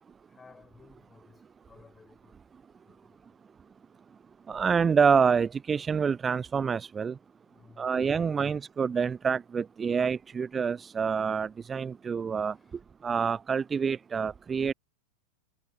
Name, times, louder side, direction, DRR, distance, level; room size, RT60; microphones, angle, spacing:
voice 1, 0.2-2.4 2.8-3.2 7.5-8.5 12.3-12.8, left 5 dB, 15° left, 6.3 m, -58 dB
voice 2, 4.5-7.2 7.8-12.6 13.0-14.7, right 6 dB, 20° right, 0.3 m, -27 dB
figure-of-eight pair, 90°, 0 cm